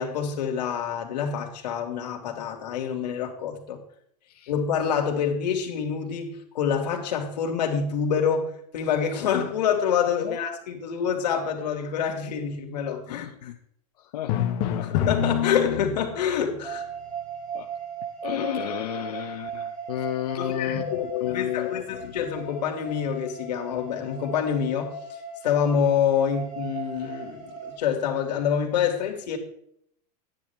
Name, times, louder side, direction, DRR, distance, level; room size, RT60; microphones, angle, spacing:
voice 1, 0.0-3.8 4.5-13.3 14.8-16.8 20.4-21.0 21.3-24.9 25.4-29.4, left 7 dB, 85° left, 3 dB, 2.8 m, -27 dB
voice 2, 13.1-13.6 14.0-14.4 14.7-14.9 17.5-17.7 18.2-22.1, left 12 dB, 70° left, 4 dB, 0.9 m, -32 dB
Drum, 14.3-16.3, left 9 dB, 35° left, 1.1 m, -26 dB
sound 1, 16.6-27.8, right 4 dB, 55° right, 5.5 m, -38 dB
12.0 x 10.0 x 3.6 m, 0.69 s
supercardioid pair, 175°, 21 cm